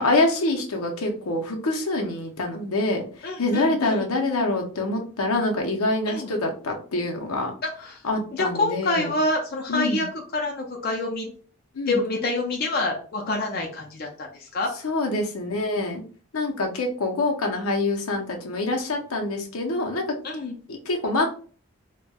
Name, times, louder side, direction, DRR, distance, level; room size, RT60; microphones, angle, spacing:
voice 1, 0.0-7.5 8.0-9.1 9.7-10.0 11.7-12.0 14.8-16.0 16.3-20.0 20.7-21.3, left 2 dB, 80° left, 2 dB, 0.7 m, -25 dB
voice 2, 3.2-4.1 6.1-6.3 7.6-8.0 8.3-10.1 10.3-11.3 11.9-14.7 20.2-20.5, left 2 dB, 45° left, 0 dB, 0.5 m, -27 dB
4.1 x 2.2 x 2.2 m, 0.41 s
head